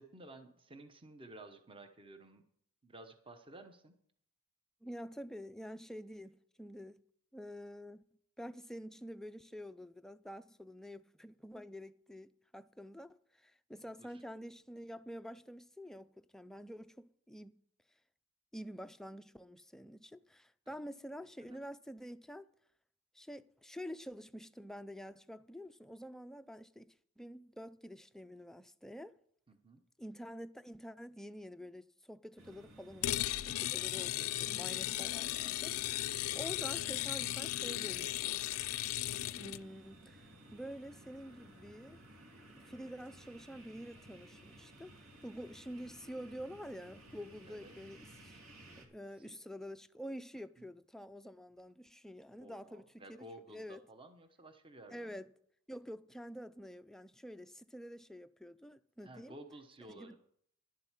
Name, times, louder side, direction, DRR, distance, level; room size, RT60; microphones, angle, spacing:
voice 1, 0.0-2.4 2.8-4.0 14.0-14.2 20.7-20.8 21.4-21.6 29.5-29.8 43.9-44.0 47.5-47.8 49.2-49.4 50.6-50.7 52.4-55.2 59.0-60.2, right 1 dB, 25° right, 0.9 m, -54 dB
voice 2, 4.8-7.0 7.3-8.0 8.4-17.5 18.5-22.5 23.1-29.2 30.0-38.4 39.3-42.0 42.6-48.4 48.8-53.8 54.9-55.3 55.7-59.4 59.9-60.2, equal, ahead, 0.4 m, -48 dB
sound 1, 32.4-48.9, right 1 dB, 70° right, 2.5 m, -57 dB
sound 2, 33.0-39.6, left 14 dB, 75° left, 0.4 m, -36 dB
11.5 x 7.7 x 7.3 m
head